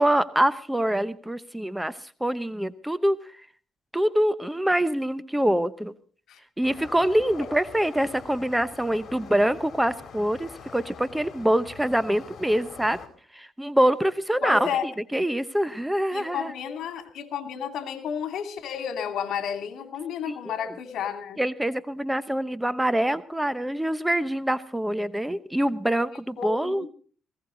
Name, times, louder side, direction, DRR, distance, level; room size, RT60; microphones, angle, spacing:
voice 1, 0.0-1.9 2.2-3.2 3.9-5.9 6.6-13.0 13.3-16.5 20.3-20.4 21.4-26.9, right 1 dB, 5° right, 14 dB, 0.9 m, -25 dB
sound 1, 6.6-13.1, left 6 dB, 50° left, 3.9 m, -44 dB
voice 2, 14.4-14.9 16.1-21.4 26.4-26.9, left 8 dB, 75° left, 7 dB, 2.6 m, -32 dB
20.0 x 16.5 x 3.9 m, 0.42 s
cardioid pair, 90°, 0 cm